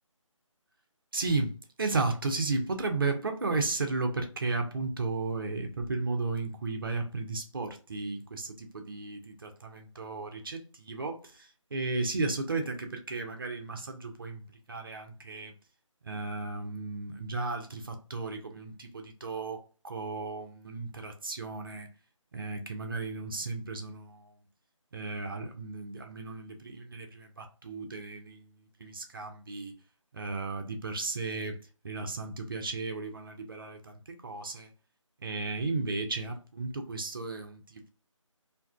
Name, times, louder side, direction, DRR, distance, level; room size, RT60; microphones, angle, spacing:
voice 1, 1.1-14.4 14.7-15.5 16.0-21.9 22.3-24.3 24.9-29.7 30.1-31.6 31.8-34.7 35.2-37.9, right 3 dB, 40° right, 0.6 m, -34 dB
2.6 x 2.4 x 3.5 m
figure-of-eight pair, 155°, 17 cm